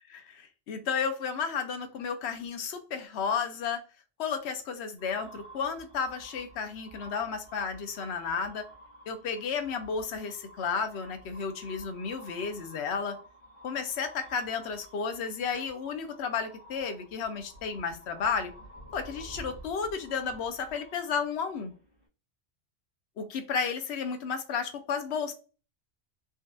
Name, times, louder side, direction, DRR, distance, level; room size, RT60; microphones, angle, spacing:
voice 1, 0.1-3.8 4.2-8.7 9.1-13.2 13.6-18.5 18.9-21.7 23.2-25.3, left 6 dB, 80° left, 8 dB, 0.9 m, -33 dB
sound 1, 5.0-22.0, right 1 dB, 60° left, 1.4 m, -51 dB
3.9 x 2.3 x 2.5 m, 0.34 s
omnidirectional pair, 1.1 m